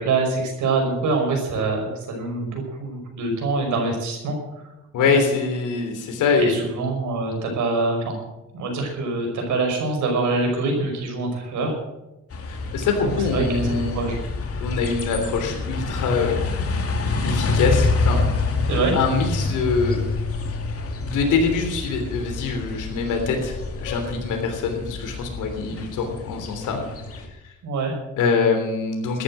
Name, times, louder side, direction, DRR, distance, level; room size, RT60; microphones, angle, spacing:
voice 1, 0.0-4.7 5.1-5.2 6.4-8.2 8.5-11.8 13.0-14.2 18.7-19.0 27.6-28.0, right 3 dB, 75° right, 2 dB, 5.6 m, -25 dB
voice 2, 4.9-6.6 12.5-14.0 14.6-16.4 17.2-18.2 18.9-20.0 20.9-26.8 27.2-27.3 28.2-29.2, left 4 dB, 85° left, 4 dB, 3.4 m, -24 dB
sound 1, 12.3-27.3, left 3 dB, 50° left, 2.5 m, -27 dB
14.0 x 11.0 x 7.6 m, 0.96 s
cardioid pair, 90°, 30 cm